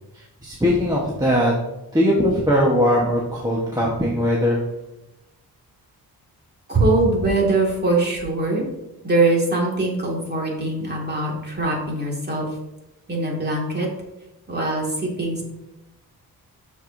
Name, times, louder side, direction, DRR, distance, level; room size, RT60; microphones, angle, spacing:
voice 1, 0.1-1.5 1.9-4.6, equal, 10° right, -5 dB, 1.1 m, -20 dB
voice 2, 6.7-8.7 9.0-12.4 13.1-13.9 14.5-15.4, right 2 dB, 25° right, -2 dB, 2.0 m, -22 dB
12.5 x 4.7 x 2.6 m, 0.94 s
wide cardioid pair, 145°, 38 cm